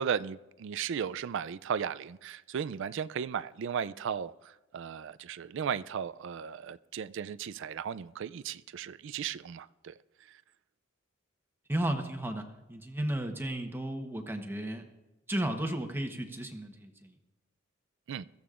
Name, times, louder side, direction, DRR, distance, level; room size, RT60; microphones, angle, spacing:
voice 1, 0.0-10.0 10.3-10.4 18.1-18.2, right 7 dB, 65° right, 0.4 m, -36 dB
voice 2, 11.7-14.8 15.3-17.2, right 1 dB, 10° right, 1.0 m, -34 dB
22.0 x 14.5 x 2.5 m
head